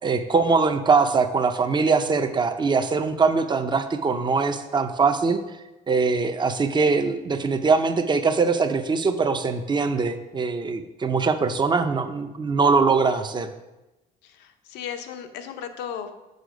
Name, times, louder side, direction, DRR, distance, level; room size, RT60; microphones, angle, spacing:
voice 1, 0.0-5.4 5.9-13.5, right 4 dB, 25° right, 9 dB, 0.6 m, -22 dB
voice 2, 14.2-16.3, left 8 dB, 90° left, 7 dB, 0.8 m, -36 dB
6.6 x 5.8 x 5.2 m, 1.0 s
cardioid pair, 110°, 17 cm